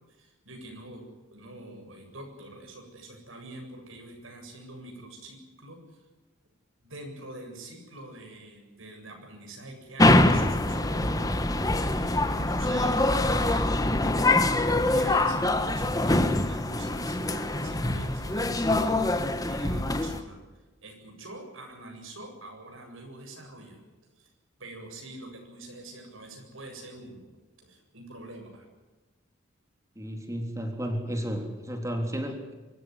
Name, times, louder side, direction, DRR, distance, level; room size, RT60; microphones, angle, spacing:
voice 1, 0.1-1.0 1.3-6.1 6.8-13.9 14.9-20.4 20.8-23.8 24.2-24.3 24.6-28.7, right 1 dB, 85° right, 2 dB, 7.9 m, -45 dB
sound 1, 10.0-20.2, left 2 dB, 20° left, 1.4 m, -24 dB
voice 2, 30.0-32.5, equal, 15° right, 4 dB, 3.6 m, -32 dB
25.0 x 15.0 x 9.9 m, 1.2 s
head